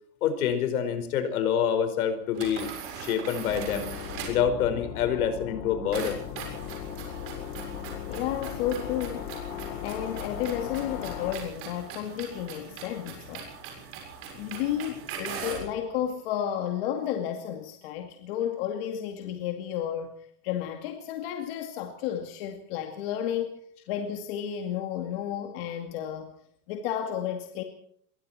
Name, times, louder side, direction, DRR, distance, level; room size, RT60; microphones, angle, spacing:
voice 1, 0.2-3.9 4.3-6.2, left 8 dB, 65° left, 9 dB, 5.1 m, -27 dB
sound 1, 2.3-4.5 5.9-15.7, right 6 dB, 30° right, 6.9 m, -41 dB
sound 2, 3.5-11.4, left 10 dB, 20° left, 0.9 m, -38 dB
voice 2, 8.1-9.3 9.8-13.6 14.3-20.1 20.4-23.6 23.9-26.3 26.7-27.6, left 10 dB, 35° left, 4 dB, 2.4 m, -32 dB
25.5 x 23.0 x 4.4 m, 0.64 s
supercardioid pair, 175°, 47 cm